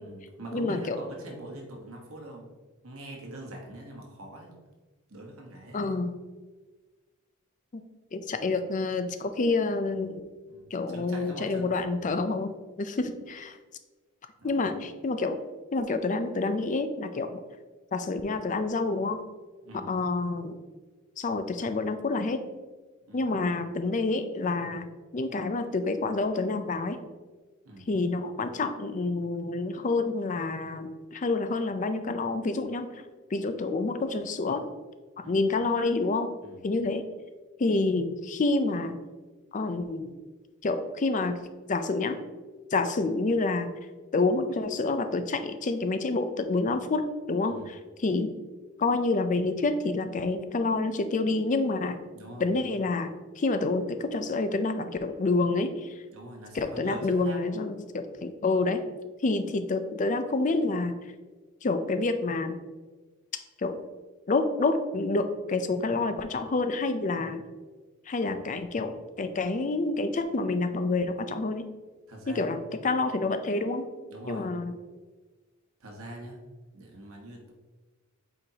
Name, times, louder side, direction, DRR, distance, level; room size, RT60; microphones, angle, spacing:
voice 1, 0.0-2.5 2.8-4.6 5.1-5.9 10.5-11.8 14.4-14.7 19.6-19.9 23.1-23.3 27.6-27.9 35.2-35.4 36.4-36.6 47.5-47.7 52.1-52.5 56.1-57.4 72.1-72.6 74.1-74.5 75.8-76.4 76.7-77.5, right 1 dB, 85° right, 0 dB, 1.3 m, -43 dB
voice 2, 0.5-1.0 5.7-6.1 7.7-7.8 8.1-10.2 10.7-12.5 12.8-13.6 14.4-15.4 15.7-17.4 17.9-19.2 19.9-20.6 21.2-22.4 23.1-27.0 27.9-33.0 33.3-34.6 35.2-36.3 36.6-37.0 37.6-39.0 39.5-40.1 40.6-41.4 41.7-42.2 42.7-43.7 44.1-47.0 47.3-48.3 48.8-52.0 52.4-56.0 56.5-58.8 59.2-60.9 61.6-62.5 63.6-63.8 64.3-67.4 68.1-71.6 72.3-72.6 72.8-73.8 74.3-74.7, left 3 dB, 35° left, 9 dB, 0.5 m, -28 dB
7.8 x 4.3 x 2.9 m, 1.3 s
head